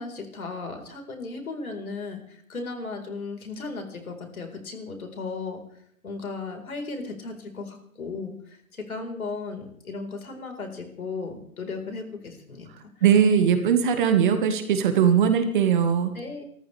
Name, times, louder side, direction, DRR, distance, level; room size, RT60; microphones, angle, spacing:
voice 1, 0.0-5.6 6.0-12.9 16.1-16.4, left 3 dB, 70° left, 4 dB, 4.5 m, -36 dB
voice 2, 13.0-16.1, right 8 dB, 35° right, 7 dB, 1.8 m, -20 dB
26.5 x 14.0 x 3.4 m, 0.68 s
figure-of-eight pair, 145°, 45 cm